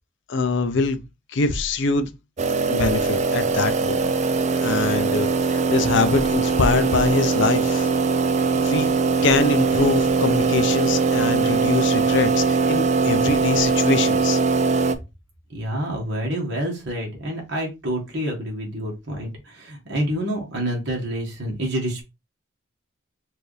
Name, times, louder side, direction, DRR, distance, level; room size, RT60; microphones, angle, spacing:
voice 1, 0.3-1.0 1.3-2.1 2.7-4.1 4.6-7.9 8.5-8.9 9.2-14.4, left 4 dB, 60° left, 0.5 m, -23 dB
sound 1, 2.4-15.0, right 4 dB, 35° right, 0.4 m, -21 dB
voice 2, 15.5-22.0, equal, 55° right, 1.4 m, -28 dB
4.5 x 2.6 x 3.1 m
head